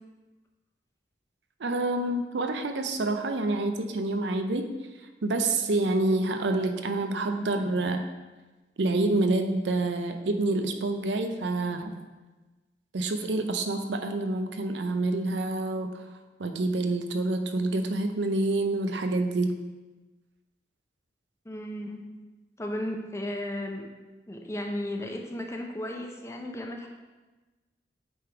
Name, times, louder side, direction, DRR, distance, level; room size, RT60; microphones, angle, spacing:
voice 1, 1.6-4.7 5.2-8.0 8.8-12.0 12.9-16.0 16.4-19.6, right 2 dB, 85° right, 6 dB, 0.6 m, -27 dB
voice 2, 21.5-22.0 22.6-23.9 24.3-26.9, left 1 dB, 15° left, 2 dB, 0.6 m, -34 dB
8.5 x 3.4 x 4.5 m, 1.2 s
head